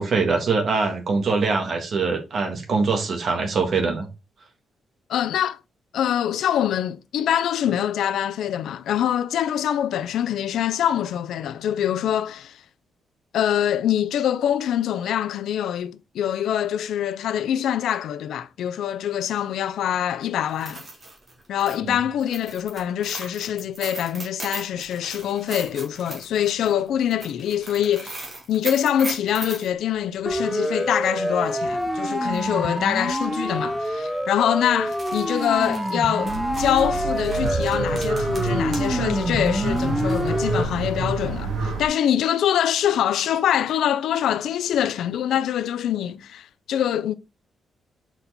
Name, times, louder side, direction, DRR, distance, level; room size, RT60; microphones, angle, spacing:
voice 1, 0.0-4.1 21.9-22.0, right 4 dB, 45° right, 1.5 m, -23 dB
voice 2, 5.1-5.6 5.9-12.6 13.3-20.8 21.5-47.1, left 10 dB, 80° left, 0.4 m, -24 dB
sound 1, 20.5-29.7 31.8-31.9 32.3-32.4 33.2-33.4 33.7-33.9 34.7-38.9 39.2-40.3, right 2 dB, 25° right, 1.9 m, -38 dB
Siren, 30.3-40.6, equal, ahead, 0.5 m, -26 dB
sound 2, 36.2-41.9, right 4 dB, 75° right, 2.0 m, -28 dB
5.2 x 4.4 x 4.1 m
wide cardioid pair, 180°, 0 cm